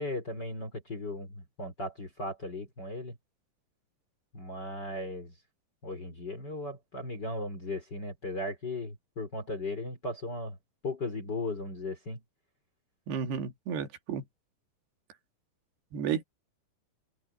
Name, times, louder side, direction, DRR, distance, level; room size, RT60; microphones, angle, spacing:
voice 1, 0.0-3.2 4.3-5.3 5.8-10.6 10.8-12.2, left 2 dB, 25° left, 4.2 m, -37 dB
voice 2, 13.1-14.2 15.9-16.2, right 7 dB, 65° right, 4.1 m, -32 dB
omnidirectional pair, 5.3 m